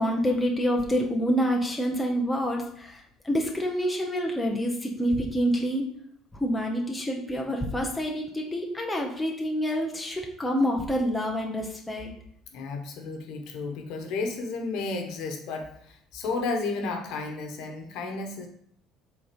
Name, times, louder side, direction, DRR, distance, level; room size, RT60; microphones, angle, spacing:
voice 1, 0.0-5.8 6.3-12.1, equal, 5° left, 0 dB, 0.9 m, -27 dB
voice 2, 12.5-18.5, left 3 dB, 65° left, 4 dB, 1.3 m, -32 dB
7.5 x 3.9 x 5.2 m, 0.67 s
cardioid pair, 165°, 0 cm